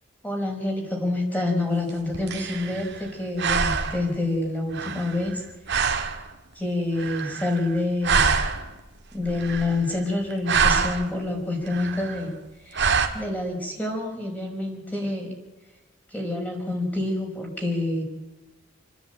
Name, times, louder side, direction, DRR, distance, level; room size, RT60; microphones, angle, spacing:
voice 1, 0.2-5.4 6.6-8.3 9.1-12.4 12.7-15.3 16.1-18.0, left 2 dB, 10° left, 0 dB, 5.4 m, -27 dB
sound 1, 1.9-3.1 3.4-4.1 4.7-5.4 5.7-6.2 7.0-7.8 8.0-8.8 9.3-10.0 10.3-11.1 11.7-12.2 12.7-13.1, right 5 dB, 60° right, 2.1 m, -25 dB
29.0 x 10.5 x 9.1 m, 1.1 s
head